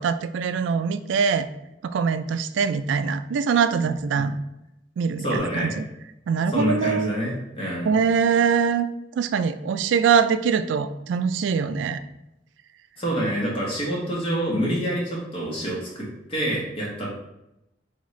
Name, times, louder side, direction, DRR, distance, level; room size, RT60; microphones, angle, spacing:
voice 1, 0.0-1.5 1.8-4.4 5.0-5.8 6.3-7.1 7.6-8.9 9.2-12.0, right 6 dB, 75° right, 12 dB, 0.3 m, -23 dB
voice 2, 5.2-5.7 6.5-7.9 13.0-17.1, equal, 30° left, -4 dB, 1.2 m, -27 dB
3.9 x 3.6 x 3.1 m, 0.88 s
head